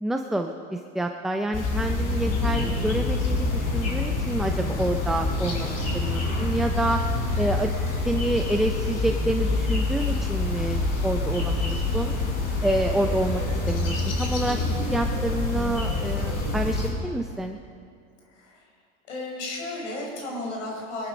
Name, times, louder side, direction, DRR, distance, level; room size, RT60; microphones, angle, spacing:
voice 1, 0.0-5.7 5.9-7.7 8.1-12.1 12.6-13.4 13.7-14.6 14.9-17.6, right 1 dB, ahead, 4 dB, 0.6 m, -28 dB
sound 1, 1.5-16.9, left 2 dB, 50° left, 4.8 m, -26 dB
voice 2, 18.3-18.7 19.1-21.1, left 2 dB, 85° left, -1 dB, 5.2 m, -34 dB
22.0 x 11.5 x 5.2 m, 2.3 s
supercardioid pair, 110°, 35 cm